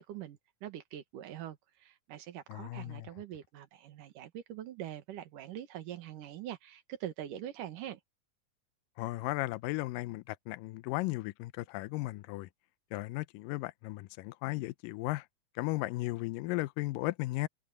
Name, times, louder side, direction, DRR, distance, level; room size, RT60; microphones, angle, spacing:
voice 1, 0.0-8.0, right 11 dB, 70° right, 3.0 m, -44 dB
voice 2, 2.5-3.1 9.0-12.5 12.9-15.3 15.6-17.5, left 19 dB, 85° left, 2.3 m, -35 dB
omnidirectional pair, 3.9 m